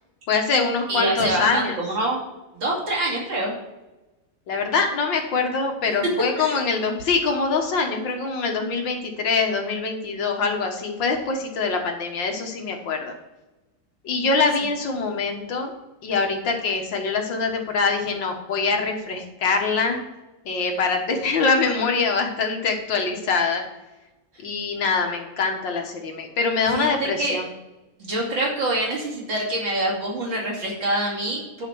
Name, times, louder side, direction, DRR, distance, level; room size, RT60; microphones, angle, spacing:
voice 1, 0.3-1.8 4.5-13.1 14.0-15.7 16.0-20.0 20.5-23.6 24.4-27.5, left 4 dB, 70° left, 3 dB, 2.1 m, -24 dB
voice 2, 0.9-2.2 2.5-3.5 6.4-6.6 26.7-27.4 28.1-31.7, right 1 dB, 70° right, -4 dB, 3.5 m, -25 dB
11.0 x 5.2 x 6.1 m, 1.1 s
omnidirectional pair, 2.1 m